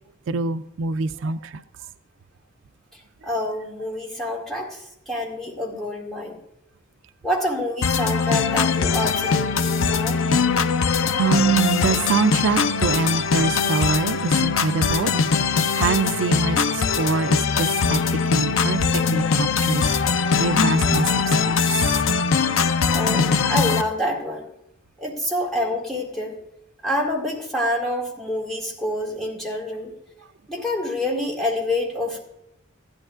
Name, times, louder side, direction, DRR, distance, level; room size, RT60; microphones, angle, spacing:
voice 1, 0.3-1.6 11.2-15.1 15.7-18.0 18.3-19.9 20.3-21.8, right 5 dB, 70° right, 11 dB, 0.4 m, -24 dB
voice 2, 2.9-6.4 7.2-10.2 22.9-24.5 25.0-26.4 26.8-29.9 30.5-32.2, left 1 dB, ahead, -3 dB, 1.9 m, -27 dB
sound 1, 7.8-23.8, left 5 dB, 90° left, 0.6 m, -21 dB
15.5 x 11.5 x 2.4 m, 0.80 s
head